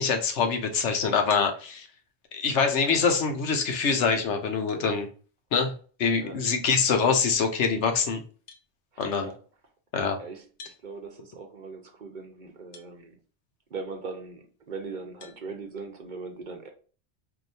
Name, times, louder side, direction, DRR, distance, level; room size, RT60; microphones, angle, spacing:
voice 1, 0.0-1.9 2.3-5.1 5.5-5.7 6.0-8.2 9.0-9.3 9.9-10.2, left 5 dB, 85° left, 1.1 m, -24 dB
sound 1, 1.3-1.6 3.2-3.3 3.9-4.1 6.5-6.7 8.5-8.6 10.6-10.8 12.7-12.9 13.5-13.6 15.2-15.4, left 5 dB, 55° left, 0.8 m, -43 dB
voice 2, 8.9-9.4 10.2-13.2 13.7-16.7, right 4 dB, 50° right, 0.8 m, -40 dB
4.6 x 2.7 x 2.7 m
omnidirectional pair, 1.2 m